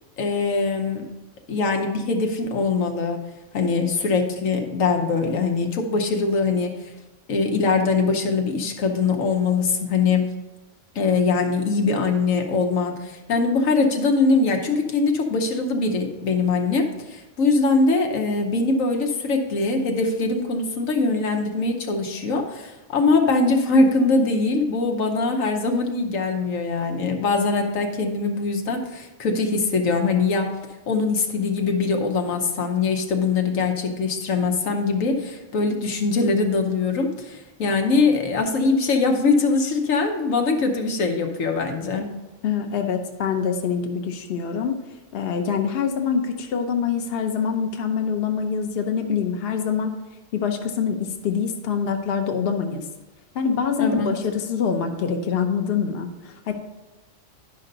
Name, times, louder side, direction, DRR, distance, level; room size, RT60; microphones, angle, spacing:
voice 1, 0.2-1.0 1.5-3.2 3.5-6.7 7.3-10.2 10.9-30.5 30.9-42.1 53.8-54.1, left 3 dB, 85° left, 4 dB, 1.4 m, -22 dB
voice 2, 42.4-44.8 45.1-49.9 50.3-52.9 53.3-56.5, left 6 dB, 55° left, 5 dB, 0.9 m, -25 dB
11.0 x 5.4 x 3.9 m, 1.1 s
omnidirectional pair, 1.3 m